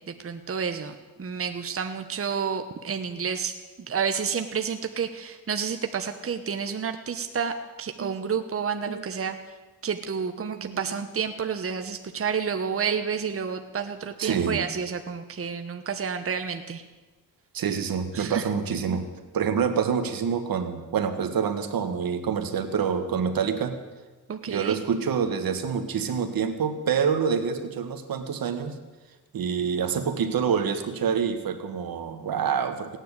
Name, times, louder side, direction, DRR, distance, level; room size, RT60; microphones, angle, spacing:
voice 1, 0.1-3.5 3.9-9.4 9.8-16.8 18.1-18.5 24.3-24.8, right 6 dB, 40° right, 7 dB, 1.2 m, -30 dB
voice 2, 10.4-10.8 14.2-14.6 17.5-19.1 19.3-23.8 24.5-28.8 29.3-33.0, right 6 dB, 75° right, 8 dB, 1.8 m, -27 dB
17.5 x 10.0 x 8.3 m, 1.2 s
cardioid pair, 85°, 35 cm